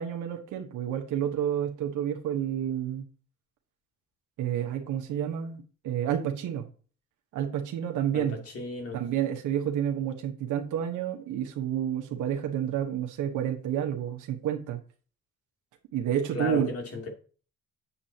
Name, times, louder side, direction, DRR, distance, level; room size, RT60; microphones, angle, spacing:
voice 1, 0.0-3.1 4.4-6.7 7.3-8.4 8.9-14.8 15.9-16.7, right 10 dB, 85° right, 1.4 m, -30 dB
voice 2, 8.5-9.0 16.3-17.1, left 3 dB, 50° left, 2.9 m, -34 dB
8.6 x 7.5 x 2.9 m
cardioid pair, 90°, 30 cm